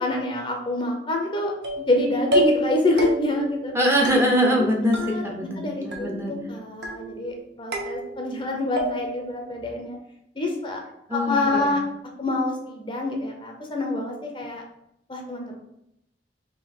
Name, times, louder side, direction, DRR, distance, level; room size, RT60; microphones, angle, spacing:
voice 1, 0.0-1.5 1.8-3.7 4.6-4.7 5.0-5.2 5.6-10.0 10.4-10.8 11.1-11.8 12.2-14.6 15.1-15.6, left 2 dB, 30° left, 2 dB, 0.6 m, -26 dB
sound 1, 1.6-2.0 2.3-2.7 3.0-3.5 4.1-4.7 4.9-5.6 5.9-6.4 6.8-7.3 7.7-8.4 8.8-9.3, right 1 dB, 75° right, 0.8 m, -28 dB
voice 2, 3.7-6.3 11.1-11.7, equal, 15° right, 0 dB, 0.7 m, -23 dB
3.7 x 2.8 x 4.5 m, 0.80 s
head